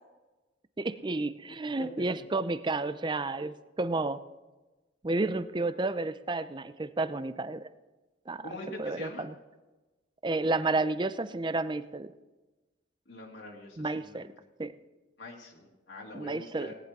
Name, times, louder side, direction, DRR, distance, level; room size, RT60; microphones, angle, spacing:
voice 1, 0.8-4.2 5.0-7.7 8.3-9.3 10.2-12.1 13.8-14.3 14.6-14.7 16.1-16.7, right 2 dB, 25° right, 14 dB, 0.5 m, -31 dB
voice 2, 8.4-9.3 13.1-14.3 15.2-16.7, left 1 dB, 65° left, -2 dB, 2.3 m, -44 dB
18.5 x 10.5 x 4.2 m, 1.2 s
head